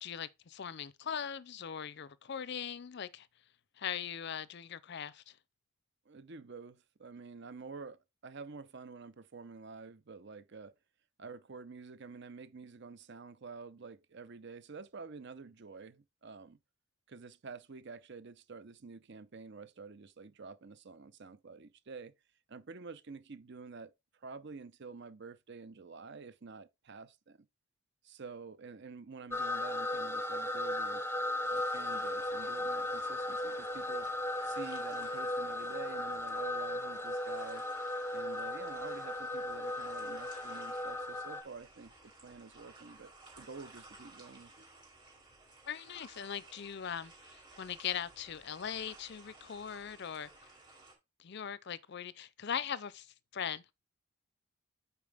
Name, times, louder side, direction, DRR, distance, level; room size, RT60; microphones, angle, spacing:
voice 1, 0.0-3.3 3.8-5.4 45.7-50.5 51.2-53.7, left 8 dB, 50° left, 0.5 m, -40 dB
voice 2, 6.1-10.7 11.2-16.6 17.1-22.1 22.5-23.9 24.2-27.5 28.0-31.0 31.5-34.1 34.4-37.6 38.1-43.1 43.4-44.5, right 4 dB, 55° right, 0.6 m, -49 dB
sound 1, 29.3-41.4, left 1 dB, 10° left, 0.7 m, -36 dB
sound 2, 31.4-50.9, right 2 dB, 20° right, 2.5 m, -57 dB
8.5 x 4.6 x 3.5 m
head